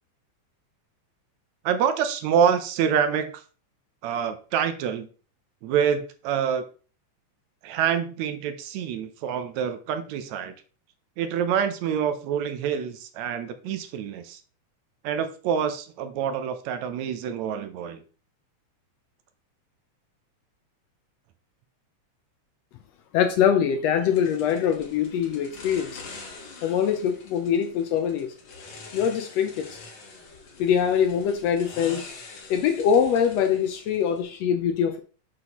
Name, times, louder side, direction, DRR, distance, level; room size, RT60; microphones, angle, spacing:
voice 1, 1.7-3.4 4.0-5.1 5.6-6.6 7.6-10.5 11.2-14.4 15.0-18.0, right 8 dB, 75° right, 9 dB, 1.9 m, -26 dB
voice 2, 23.1-26.0 26.6-28.3 28.9-29.8 30.6-32.1 32.5-35.0, left 8 dB, 75° left, 7 dB, 1.6 m, -23 dB
sound 1, 24.1-34.2, left 4 dB, 50° left, 1.6 m, -45 dB
7.6 x 6.1 x 2.9 m, 0.38 s
omnidirectional pair, 3.4 m